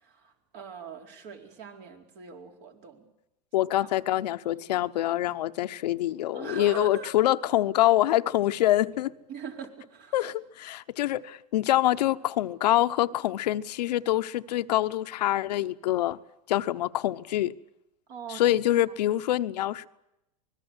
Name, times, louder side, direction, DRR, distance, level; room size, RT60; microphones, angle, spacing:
voice 1, 0.0-3.1 3.8-3.9 4.4-4.6 6.3-7.3 9.3-10.3 18.1-18.6, right 7 dB, 55° right, 4.5 m, -42 dB
voice 2, 3.5-9.1 10.1-16.2 16.5-17.5 18.3-19.9, left 14 dB, 80° left, 0.9 m, -25 dB
25.0 x 21.0 x 8.1 m
hypercardioid pair, 110°, 21 cm